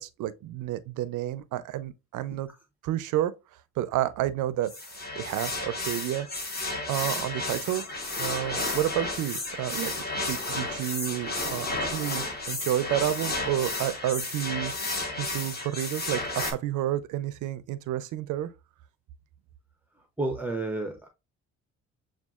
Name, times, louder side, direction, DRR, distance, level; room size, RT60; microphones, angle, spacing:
voice 1, 0.0-2.5 2.8-3.3 3.8-6.3 6.9-7.9 8.2-9.9 10.3-14.7 15.2-18.5, right 13 dB, 80° right, 0.5 m, -30 dB
sound 1, 4.6-16.5, left 2 dB, 30° left, 1.3 m, -32 dB
voice 2, 19.9-21.1, right 2 dB, 5° right, 0.6 m, -32 dB
7.1 x 2.4 x 2.3 m
cardioid pair, 90°, 30 cm